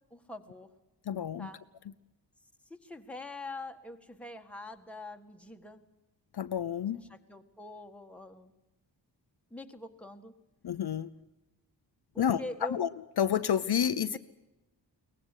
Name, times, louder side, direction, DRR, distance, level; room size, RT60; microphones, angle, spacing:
voice 1, 0.1-0.7 1.4-1.6 2.7-5.8 7.1-8.5 9.5-10.3 12.1-12.8, left 2 dB, 5° left, 4 dB, 1.6 m, -44 dB
voice 2, 1.1-1.5 6.3-7.0 10.6-11.1 12.2-12.4 12.7-12.9 13.2-14.2, left 9 dB, 60° left, 10 dB, 0.8 m, -29 dB
23.0 x 19.0 x 8.2 m, 1.0 s
wide cardioid pair, 175°, 44 cm